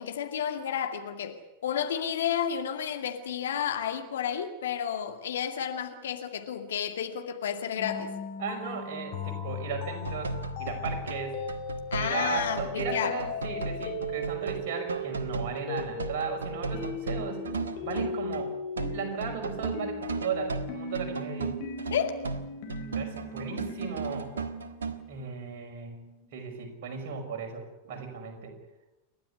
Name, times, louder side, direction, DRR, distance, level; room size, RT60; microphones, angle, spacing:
voice 1, 0.0-8.1 11.9-13.1 21.9-22.2 23.5-24.0, left 8 dB, 65° left, 2.2 m, -32 dB
sound 1, 7.8-26.3, left 4 dB, 50° left, 3.9 m, -38 dB
voice 2, 8.4-11.4 12.0-17.4 17.8-18.6 18.9-21.6 22.8-24.3 25.1-26.0 26.3-28.5, right 6 dB, 50° right, 5.7 m, -36 dB
sound 2, 10.0-18.5 18.8-25.0, right 4 dB, 75° right, 1.5 m, -36 dB
29.5 x 12.0 x 9.8 m
figure-of-eight pair, 90°, 0 cm